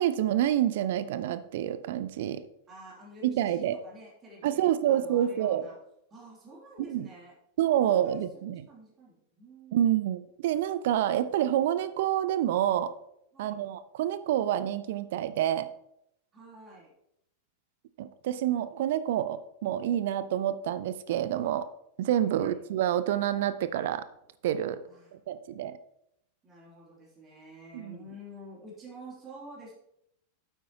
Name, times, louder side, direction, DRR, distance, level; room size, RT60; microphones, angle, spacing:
voice 1, 0.0-2.5 3.2-3.8 4.4-5.6 6.9-7.1 7.6-8.7 9.7-12.9 13.4-15.7 18.0-21.7 22.0-24.0 24.4-24.8 25.1-25.8 27.7-28.0, right 11 dB, 55° right, 14 dB, 0.5 m, -28 dB
voice 2, 2.7-5.8 6.1-7.3 7.8-10.1 13.3-13.6 16.3-16.9 22.2-22.7 24.9-25.1 26.4-29.7, right 1 dB, 25° right, -4 dB, 3.0 m, -49 dB
9.2 x 8.0 x 2.9 m, 0.77 s
figure-of-eight pair, 90°, 0 cm